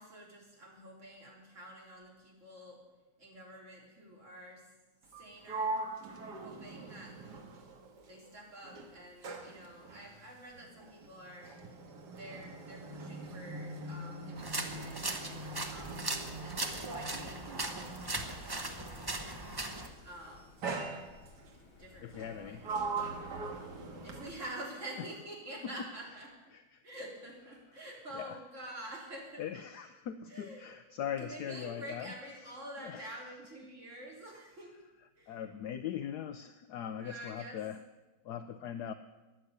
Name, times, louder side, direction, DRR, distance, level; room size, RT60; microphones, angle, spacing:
voice 1, 0.0-2.8 3.2-4.7 5.0-5.9 6.3-7.2 8.1-11.8 12.1-19.7 20.0-20.6 21.8-22.7 24.0-26.3 26.8-29.4 30.3-30.7 31.2-34.8 35.2-35.4 37.0-37.6, right 1 dB, 40° right, -2 dB, 3.8 m, -48 dB
Sliding door, 5.0-8.3 8.6-18.8 19.7-20.0 20.6-21.5 22.1-24.7, right 3 dB, 65° right, 2.1 m, -42 dB
sound 1, 14.4-19.9, right 2 dB, 15° right, 0.8 m, -39 dB
sound 2, 16.3-24.4, left 3 dB, 35° left, 1.2 m, -59 dB
voice 2, 22.0-22.7 23.5-23.7 26.5-26.8 28.1-28.4 29.4-32.1 32.8-33.2 35.3-37.8 38.2-38.9, left 9 dB, 70° left, 9 dB, 1.1 m, -40 dB
14.0 x 10.0 x 8.1 m, 1.1 s
omnidirectional pair, 2.0 m